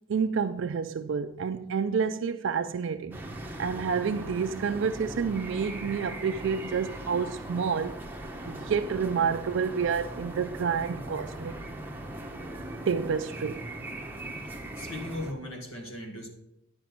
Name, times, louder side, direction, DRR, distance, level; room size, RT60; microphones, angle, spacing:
voice 1, 0.1-3.2 3.6-8.0 8.5-11.6 12.9-13.7, right 6 dB, 60° right, 0.4 m, -29 dB
sound 1, 3.1-15.3, right 1 dB, 10° right, 0.8 m, -39 dB
voice 2, 14.8-16.3, left 1 dB, 75° left, 1.9 m, -37 dB
10.0 x 5.1 x 5.9 m
head